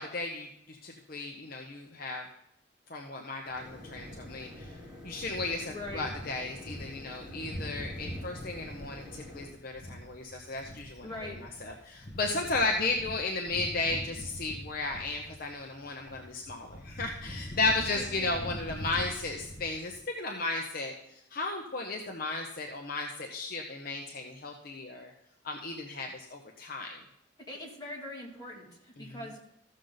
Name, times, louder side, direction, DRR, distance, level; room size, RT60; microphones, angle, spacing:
voice 1, 0.0-2.2 2.9-25.1 25.4-27.0 29.0-29.2, left 3 dB, 50° left, 2 dB, 0.8 m, -35 dB
sound 1, 3.5-20.0, equal, 70° left, 1.8 m, -44 dB
sound 2, 3.5-9.5, left 1 dB, 5° right, 2.8 m, -48 dB
voice 2, 5.7-6.1 11.0-11.4 12.5-12.8 17.8-18.3 27.5-29.4, left 1 dB, 20° left, -3 dB, 2.4 m, -42 dB
14.5 x 6.5 x 3.9 m, 0.78 s
head